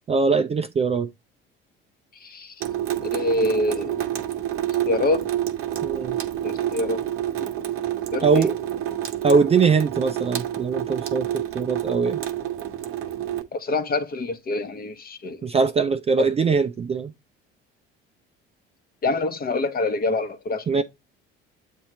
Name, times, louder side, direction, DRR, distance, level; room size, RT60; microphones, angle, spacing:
voice 1, 0.1-1.1 5.8-6.2 8.2-8.5 9.2-12.2 15.4-17.1 20.7-20.8, right 5 dB, 20° right, 0.5 m, -21 dB
voice 2, 2.2-2.6 3.0-4.0 4.8-5.3 6.4-7.0 7.4-7.5 8.1-8.5 13.5-15.5 16.2-16.3 19.0-20.8, left 2 dB, 30° left, 0.9 m, -26 dB
Water tap faucet / Sink (filling or washing) / Drip, 2.6-13.4, right 11 dB, 45° right, 0.9 m, -28 dB
8.1 x 2.8 x 4.4 m
figure-of-eight pair, 55°, 30 cm